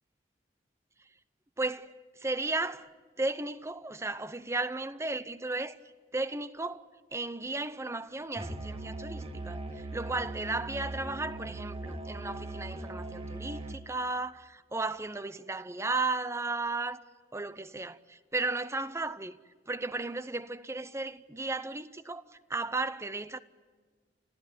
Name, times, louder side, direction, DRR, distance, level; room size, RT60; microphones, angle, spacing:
voice 1, 1.6-2.9 3.2-5.8 6.1-17.0 17.3-19.4 19.7-23.4, right 3 dB, 15° right, 0.7 m, -35 dB
Musical instrument, 8.4-13.9, right 1 dB, 30° right, 1.7 m, -40 dB
28.0 x 16.0 x 8.9 m
head